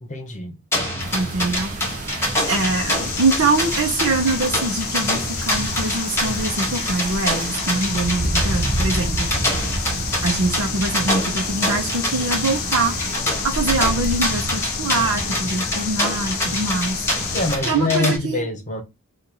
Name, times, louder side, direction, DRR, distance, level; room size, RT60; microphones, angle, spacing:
voice 1, 0.0-0.6 17.3-18.8, left 2 dB, 35° left, 0.9 m, -24 dB
sound 1, 0.7-18.2, left 1 dB, 10° left, 1.3 m, -26 dB
sound 2, 1.0-17.6, right 2 dB, 35° right, 0.7 m, -30 dB
voice 2, 1.1-2.1 2.5-9.3 10.2-13.0 13.4-17.0 17.7-18.5, right 3 dB, 70° right, 0.8 m, -23 dB
sound 3, 2.3-17.6, left 10 dB, 65° left, 0.4 m, -31 dB
3.1 x 2.5 x 4.0 m
head